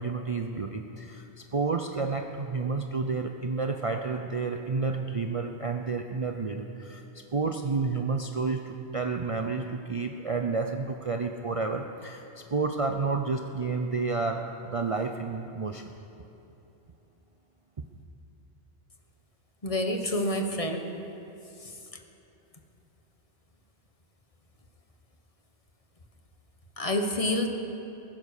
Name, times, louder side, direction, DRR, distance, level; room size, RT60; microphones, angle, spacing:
voice 1, 0.0-15.9 17.8-17.9, right 4 dB, 40° right, 4 dB, 0.6 m, -30 dB
voice 2, 19.6-20.9 26.8-27.5, left 1 dB, 30° left, 4 dB, 1.2 m, -28 dB
20.5 x 9.5 x 6.6 m, 2.9 s
omnidirectional pair, 1.1 m